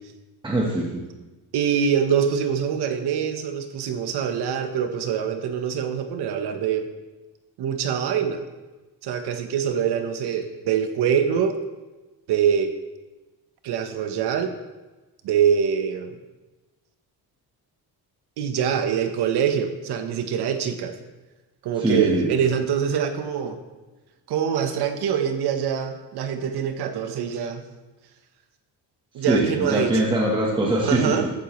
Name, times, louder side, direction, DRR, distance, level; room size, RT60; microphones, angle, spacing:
voice 1, 0.4-1.0 10.2-10.3 21.8-22.3 29.2-31.3, right 1 dB, 10° right, -3 dB, 1.2 m, -22 dB
voice 2, 1.5-6.9 7.6-8.4 9.0-11.6 12.3-12.7 13.6-14.5 15.2-16.2 18.4-21.0 21.6-23.6 24.3-27.6 29.1-30.1 30.8-31.3, right 8 dB, 85° right, 7 dB, 1.2 m, -24 dB
14.5 x 9.2 x 3.2 m, 1.2 s
cardioid pair, 165°, 38 cm